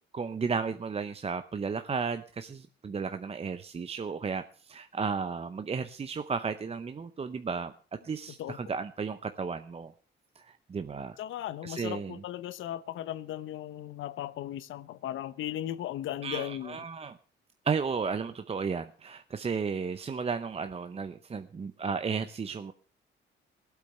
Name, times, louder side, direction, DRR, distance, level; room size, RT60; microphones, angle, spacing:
voice 1, 0.1-7.7 8.0-9.9 10.4-11.2 11.6-12.2 16.2-17.2 17.6-22.7, right 5 dB, 30° right, 0.7 m, -34 dB
voice 2, 11.2-16.8, left 12 dB, 80° left, 0.8 m, -37 dB
16.0 x 8.4 x 6.6 m
cardioid pair, 90°, 20 cm